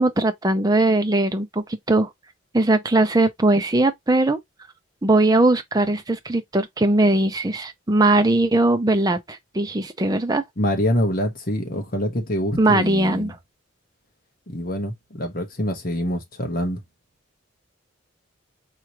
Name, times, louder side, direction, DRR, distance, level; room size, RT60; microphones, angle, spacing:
voice 1, 0.0-2.1 2.5-4.4 5.0-10.4 12.6-13.3, right 2 dB, 20° right, 0.6 m, -20 dB
voice 2, 10.6-13.3 14.5-16.8, left 1 dB, 45° left, 1.2 m, -25 dB
4.8 x 3.1 x 3.0 m
head